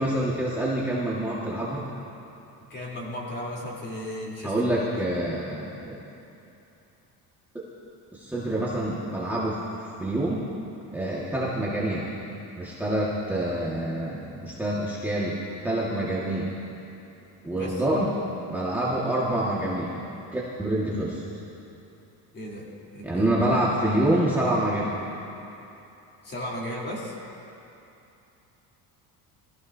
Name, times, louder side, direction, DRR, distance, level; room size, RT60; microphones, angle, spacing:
voice 1, 0.0-1.8 4.4-6.0 7.5-7.6 8.1-9.6 10.0-10.5 10.9-12.2 12.6-16.6 17.4-18.1 18.5-20.0 20.3-21.2 23.0-24.9, right 1 dB, 5° right, -8 dB, 1.7 m, -26 dB
voice 2, 2.7-4.7 17.4-17.8 22.3-23.4 26.2-27.1, left 1 dB, 30° left, -4 dB, 3.5 m, -35 dB
21.5 x 15.5 x 2.8 m, 2.9 s
cardioid pair, 130°, 38 cm